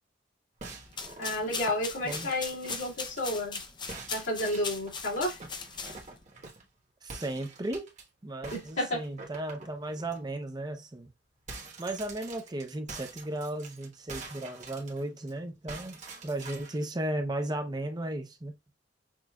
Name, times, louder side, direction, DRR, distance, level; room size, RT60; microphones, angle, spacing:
sound 1, 0.6-3.6 3.9-6.7 7.1-8.0 8.4-10.2 10.6-10.7 11.0-15.3 15.7-16.8, right 3 dB, 40° right, 1.2 m, -46 dB
sound 2, 0.9-6.2, left 5 dB, 25° left, 0.5 m, -39 dB
voice 1, 1.2-3.6 4.1-5.4 8.5-9.0, left 1 dB, 90° left, 2.4 m, -31 dB
voice 2, 7.0-7.9 8.2-11.1 11.8-16.0 16.2-18.5, right 1 dB, 20° right, 0.6 m, -35 dB
6.1 x 2.6 x 2.3 m
head